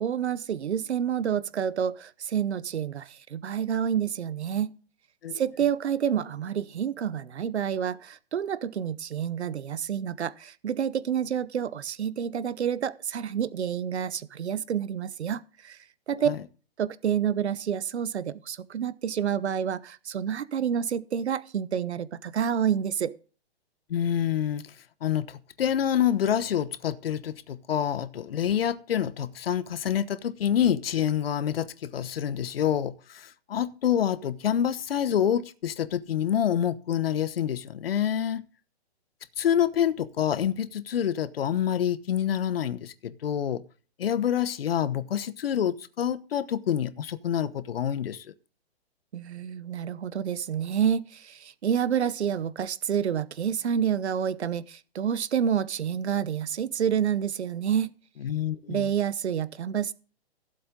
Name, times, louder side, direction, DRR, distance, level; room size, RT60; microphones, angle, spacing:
voice 1, 0.0-4.7 5.3-15.8 16.1-16.3 16.8-23.1 49.1-57.9 58.7-59.9, right 8 dB, 85° right, 0.9 m, -28 dB
voice 2, 23.9-24.6 25.0-38.4 39.4-43.6 44.0-48.2 58.2-58.9, left 9 dB, 60° left, 1.0 m, -27 dB
16.0 x 7.8 x 3.7 m
hypercardioid pair, 160°, 32 cm